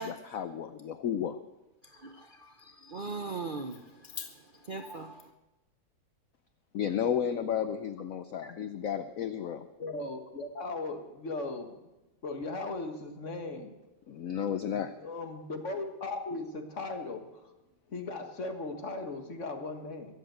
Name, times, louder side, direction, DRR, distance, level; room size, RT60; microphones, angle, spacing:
voice 1, 0.0-1.4 6.7-9.7 14.1-14.9, left 8 dB, 60° left, 11 dB, 0.9 m, -32 dB
voice 2, 1.8-5.3, right 2 dB, 40° right, 5 dB, 0.7 m, -40 dB
voice 3, 9.8-11.9 12.2-13.8 15.0-17.5 17.9-20.2, left 2 dB, 40° left, 5 dB, 1.8 m, -37 dB
22.0 x 7.9 x 7.9 m, 1.0 s
omnidirectional pair, 2.0 m